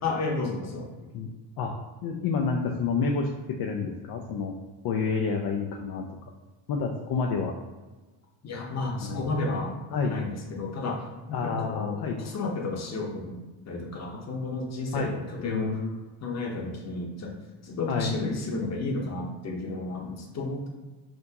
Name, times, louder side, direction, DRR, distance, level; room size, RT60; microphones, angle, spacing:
voice 1, 0.0-0.9 8.4-9.8 10.1-13.4 13.7-15.8 16.2-17.3 17.6-20.7, left 3 dB, 35° left, 0 dB, 0.9 m, -32 dB
voice 2, 2.0-3.3 3.6-4.5 4.8-6.0 6.7-7.5 9.0-9.6 9.9-10.2 11.3-12.2 14.9-16.0 17.9-18.1, left 5 dB, 50° left, 2 dB, 0.5 m, -29 dB
5.9 x 2.7 x 2.8 m, 1.2 s
cardioid pair, 130°, 47 cm